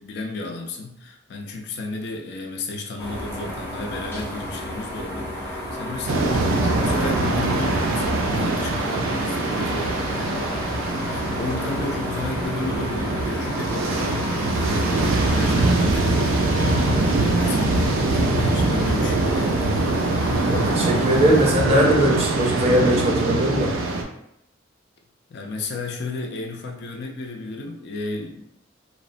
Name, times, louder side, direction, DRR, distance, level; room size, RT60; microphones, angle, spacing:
voice 1, 0.0-10.6 11.0-19.7 25.3-28.4, left 3 dB, 55° left, 3 dB, 0.4 m, -33 dB
sound 1, 3.0-21.5, left 1 dB, 10° left, 0.7 m, -31 dB
sound 2, 6.1-24.0, right 2 dB, 90° right, 0.4 m, -23 dB
voice 2, 20.5-23.7, equal, 30° right, -1 dB, 0.5 m, -20 dB
2.9 x 2.0 x 2.5 m, 0.78 s
head